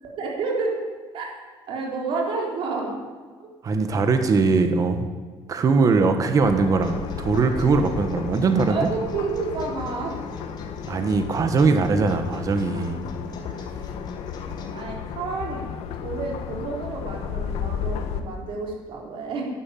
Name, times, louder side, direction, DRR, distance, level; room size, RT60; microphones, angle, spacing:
voice 1, 0.0-0.8 1.1-1.3 1.7-3.0 8.7-10.1 12.7-12.8 13.4-13.7 14.7-15.6 16.0-19.5, right 4 dB, 60° right, 0 dB, 4.2 m, -30 dB
voice 2, 3.6-5.1 5.5-8.9 10.9-13.0, right 4 dB, 35° right, 7 dB, 1.5 m, -21 dB
sound 1, 6.4-18.2, left 7 dB, 85° left, 1.5 m, -33 dB
sound 2, 6.8-14.8, left 2 dB, 45° left, 2.7 m, -43 dB
12.0 x 11.0 x 9.4 m, 1.5 s
cardioid pair, 145°, 10 cm